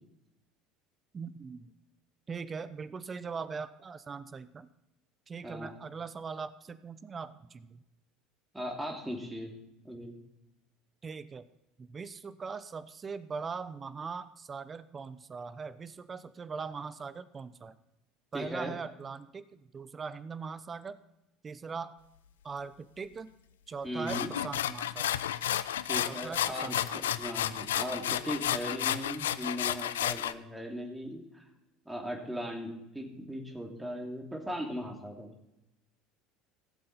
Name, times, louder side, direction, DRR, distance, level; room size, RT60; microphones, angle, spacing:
voice 1, 1.1-1.7 2.3-4.7 5.3-7.8 11.0-11.5 11.8-17.7 18.3-21.0 21.4-22.0 22.4-23.3 23.7-25.2 26.1-27.2 27.5-27.7, right 5 dB, 30° right, 14 dB, 0.8 m, -41 dB
voice 2, 8.5-9.5 9.8-10.1 18.3-18.7 23.8-24.3 25.9-31.4 31.8-35.3, equal, 5° right, 0 dB, 2.9 m, -38 dB
sound 1, 24.1-30.3, left 11 dB, 85° left, 0.4 m, -32 dB
17.5 x 7.7 x 4.2 m, 0.90 s
hypercardioid pair, 80°, 0 cm